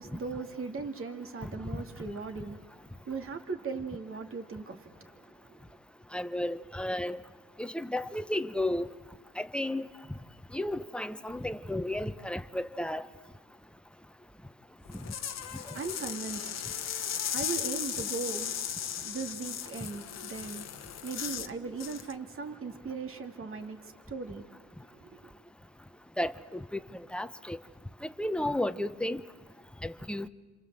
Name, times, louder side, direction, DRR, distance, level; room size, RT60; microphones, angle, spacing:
voice 1, 0.0-5.8 15.2-25.2, right 4 dB, 45° right, 2.6 m, -39 dB
voice 2, 6.1-7.2 7.6-8.9 9.4-9.9 10.5-13.1 26.2-26.8 27.1-27.6 28.0-29.2 29.8-30.3, left 1 dB, 5° left, 1.0 m, -33 dB
sound 1, 14.9-21.5 21.8-22.1, left 9 dB, 60° left, 1.2 m, -36 dB
28.5 x 26.5 x 7.8 m
cardioid pair, 90°, 30 cm